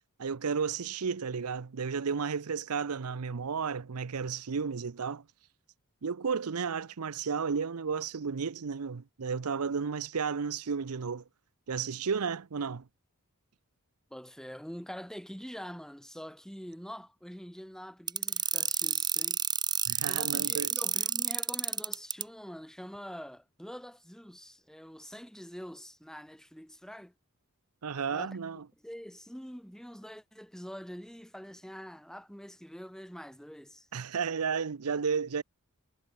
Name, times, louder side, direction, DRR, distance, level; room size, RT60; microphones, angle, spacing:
voice 1, 0.2-5.2 6.0-11.2 11.7-12.8 19.9-20.7 27.8-28.6 33.9-35.4, right 6 dB, 85° right, 0.7 m, -33 dB
voice 2, 14.1-19.4 20.1-27.1 28.1-28.4 28.8-33.9, equal, 5° left, 4.0 m, -45 dB
sound 1, 18.1-22.2, right 7 dB, 20° right, 1.7 m, -29 dB
head